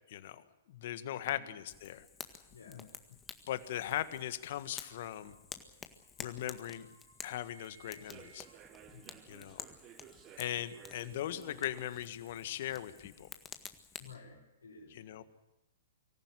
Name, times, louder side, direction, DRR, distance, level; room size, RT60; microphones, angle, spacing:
voice 1, 0.1-0.4 0.7-2.1 3.5-5.3 6.2-6.9 7.2-8.5 9.3-9.6 10.4-13.3 15.0-15.2, left 12 dB, 55° left, 13 dB, 1.6 m, -39 dB
voice 2, 1.2-1.6 2.5-2.9 8.9-9.3 14.0-15.2, left 4 dB, 85° left, 3 dB, 6.2 m, -55 dB
Fire, 1.7-14.1, left 6 dB, 15° left, 1.8 m, -51 dB
sound 1, 4.4-9.7 10.0-11.1, right 5 dB, 80° right, 2.8 m, -64 dB
Human voice / Subway metro underground, 7.9-13.4, right 11 dB, 30° right, 1.3 m, -57 dB
24.5 x 15.0 x 9.9 m, 0.99 s
hypercardioid pair, 120°, 0 cm